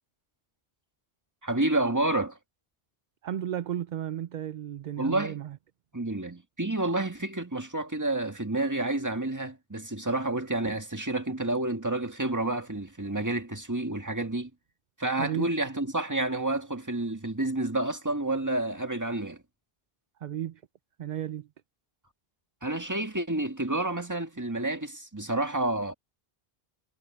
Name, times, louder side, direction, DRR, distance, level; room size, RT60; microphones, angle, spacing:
voice 1, 1.4-2.4 5.0-5.4 5.9-14.5 15.0-19.4 22.6-25.9, right 2 dB, 15° right, 1.8 m, -29 dB
voice 2, 3.2-5.6 15.2-15.5 20.2-20.6 21.0-21.5, right 11 dB, 55° right, 0.6 m, -33 dB
omnidirectional pair, 1.0 m